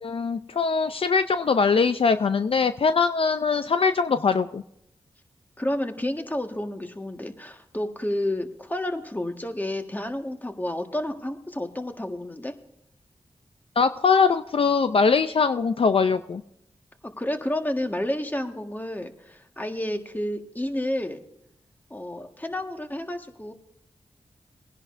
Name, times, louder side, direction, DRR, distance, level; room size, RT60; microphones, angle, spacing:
voice 1, 0.0-4.6 13.8-16.4, left 5 dB, 55° left, 10 dB, 0.5 m, -22 dB
voice 2, 5.6-12.5 17.0-21.2 21.9-23.5, left 1 dB, 15° left, 5 dB, 1.6 m, -30 dB
20.5 x 10.5 x 2.6 m, 0.78 s
cardioid pair, 45°, 11 cm